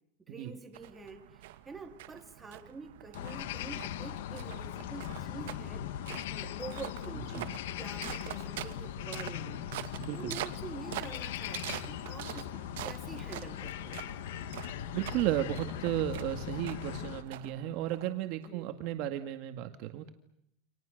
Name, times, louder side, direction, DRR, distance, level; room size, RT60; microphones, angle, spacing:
voice 1, 0.2-6.0 6.3-14.0 18.4-18.8, right 4 dB, 10° right, 4 dB, 3.3 m, -47 dB
sound 1, 0.7-18.5, right 15 dB, 85° right, 2.1 m, -45 dB
sound 2, 3.1-17.2, left 11 dB, 90° left, 1.7 m, -40 dB
voice 2, 10.0-10.3 14.9-20.1, right 13 dB, 45° right, 7 dB, 1.9 m, -34 dB
29.0 x 26.5 x 6.6 m, 0.77 s
supercardioid pair, 175°, 0 cm